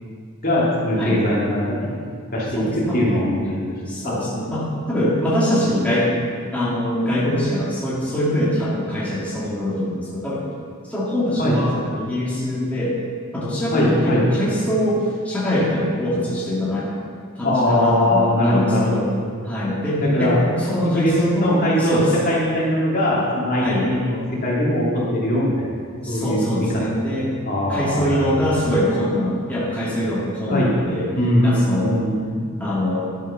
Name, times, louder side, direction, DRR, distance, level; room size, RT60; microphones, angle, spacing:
voice 1, 0.4-2.0 2.3-2.6 2.9-3.8 4.0-4.1 11.4-11.6 13.7-14.3 17.4-19.0 20.1-20.4 20.8-22.0 22.3-24.9 25.1-25.7 26.1-26.5 27.4-28.5 30.5-30.8 31.2-32.4, left 1 dB, 45° left, -6 dB, 2.8 m, -21 dB
voice 2, 2.5-3.0 3.9-6.1 6.5-10.5 10.8-13.0 13.3-16.9 17.4-19.0 19.5-22.1 23.6-23.8 26.0-27.3 27.7-31.1 31.4-31.9 32.6-33.1, left 1 dB, 5° left, -9 dB, 2.3 m, -23 dB
11.5 x 7.3 x 5.9 m, 2.1 s
head